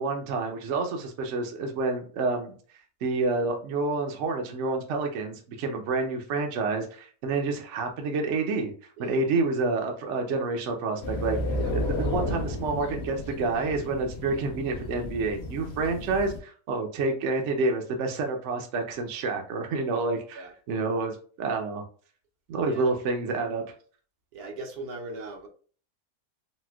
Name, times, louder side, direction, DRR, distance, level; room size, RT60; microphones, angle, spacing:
voice 1, 0.0-2.5 3.0-8.7 9.0-11.4 11.7-21.8 22.5-23.6, right 3 dB, 65° right, 0.8 m, -28 dB
sound 1, 11.0-16.4, left 1 dB, 55° left, 0.8 m, -32 dB
voice 2, 24.3-25.5, right 2 dB, 85° right, 1.3 m, -39 dB
4.1 x 2.2 x 2.3 m
omnidirectional pair, 1.6 m